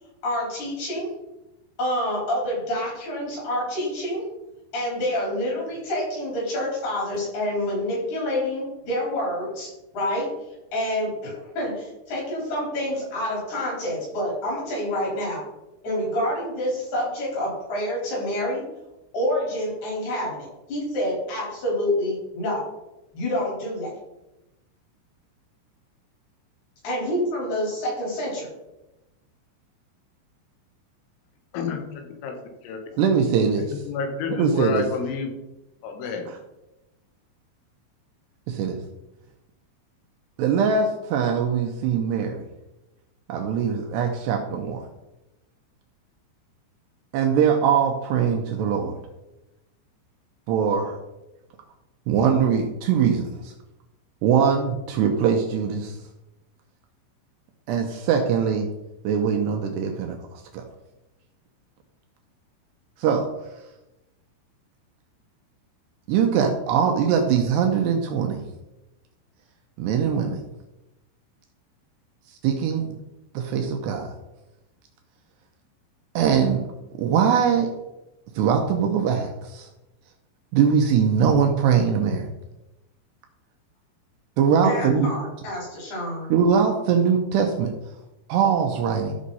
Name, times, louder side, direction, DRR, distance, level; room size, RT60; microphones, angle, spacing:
voice 1, 0.2-1.1 1.8-4.2 4.7-10.3 10.7-15.4 15.8-18.6 19.1-22.7 23.1-23.9 26.8-28.5 84.6-86.3, left 1 dB, 50° left, -4 dB, 6.2 m, -27 dB
voice 2, 31.5-32.4 32.6-32.8 33.6-35.3 35.8-36.3, left 6 dB, 80° left, 4 dB, 3.9 m, -30 dB
voice 3, 33.0-33.6 34.4-34.8 38.5-38.8 40.4-42.4 43.3-44.9 47.1-48.9 50.5-51.0 52.1-53.5 54.2-56.0 57.7-58.7 59.0-60.6 63.0-63.3 66.1-68.4 69.8-70.4 72.4-73.0 73.3-74.1 76.2-76.7 76.9-77.7 78.4-79.7 80.5-82.3 84.4-85.1 86.3-87.7 88.3-89.1, right 7 dB, 80° right, 3 dB, 2.4 m, -22 dB
14.0 x 6.3 x 4.1 m, 0.95 s
omnidirectional pair, 5.9 m